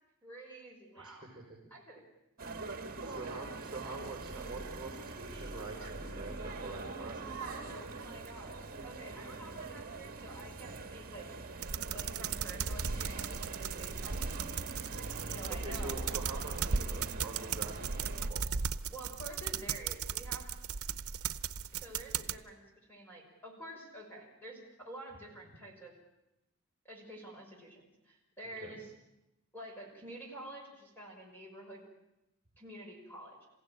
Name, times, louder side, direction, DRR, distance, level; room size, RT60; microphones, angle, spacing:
voice 1, 0.2-1.3 1.7-2.0 3.0-3.2 7.4-11.3 11.9-14.4 15.3-16.1 18.9-20.6 21.7-25.9 26.8-28.9 29.5-31.8 32.6-33.5, right 1 dB, 10° left, -1 dB, 5.9 m, -49 dB
voice 2, 0.9-1.6 3.0-7.7 13.9-14.1 15.5-18.6 28.4-28.8, right 3 dB, 20° right, 1 dB, 5.2 m, -46 dB
sound 1, 2.4-18.3, right 3 dB, 40° right, 2.0 m, -43 dB
sound 2, 11.6-22.4, right 6 dB, 75° right, 0.8 m, -37 dB
28.0 x 16.5 x 9.0 m, 0.91 s
head